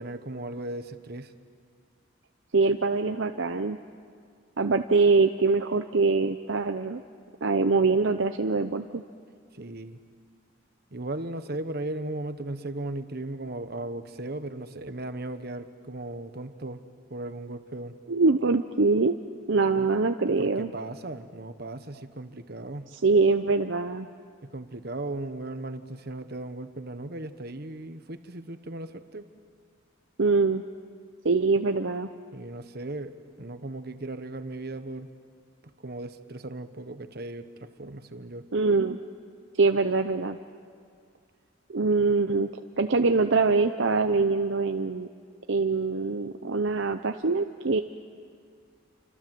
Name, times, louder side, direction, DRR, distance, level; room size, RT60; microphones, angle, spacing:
voice 1, 0.0-1.3 9.5-10.0 10.9-16.8 17.1-18.0 19.8-19.9 20.4-22.9 24.4-29.3 32.3-35.1 35.8-38.5, right 2 dB, 50° right, 10 dB, 1.2 m, -37 dB
voice 2, 2.5-3.8 4.6-7.0 7.4-9.0 18.1-19.1 19.5-20.7 23.0-24.1 30.2-30.6 31.2-32.1 38.5-39.0 39.6-40.4 41.7-42.5 42.8-45.1 45.5-47.8, right 4 dB, 65° right, 7 dB, 0.7 m, -23 dB
28.5 x 25.5 x 7.8 m, 2.1 s
head